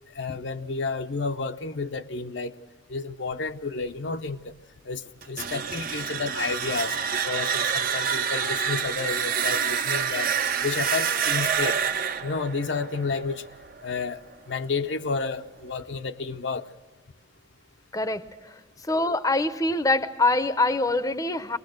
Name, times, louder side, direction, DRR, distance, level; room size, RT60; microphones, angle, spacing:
voice 1, 0.1-2.5 2.9-4.5 4.8-10.3 10.6-11.8 12.2-13.4 13.8-14.2 14.5-16.7, left 4 dB, 75° left, 0.7 m, -31 dB
sound 1, 5.2-14.0, right 7 dB, 50° right, 0.7 m, -27 dB
voice 2, 18.9-21.6, left 2 dB, 20° left, 0.6 m, -24 dB
23.5 x 19.5 x 6.5 m
head